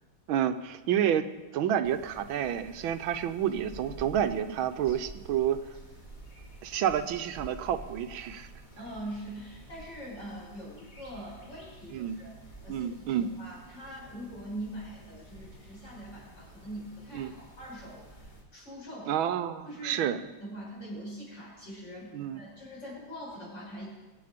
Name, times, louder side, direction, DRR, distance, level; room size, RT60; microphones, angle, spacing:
voice 1, 0.3-1.3 1.5-5.6 6.6-8.5 11.9-12.2 12.7-13.3 17.1-17.3 19.0-20.2 22.1-22.4, right 9 dB, 80° right, 10 dB, 1.5 m, -29 dB
sound 1, 1.8-18.4, right 2 dB, 20° left, 2.6 m, -50 dB
voice 2, 8.8-12.3 12.6-19.1 19.7-23.9, equal, 55° left, -4 dB, 6.2 m, -43 dB
22.5 x 8.7 x 5.1 m, 1.2 s
omnidirectional pair, 2.3 m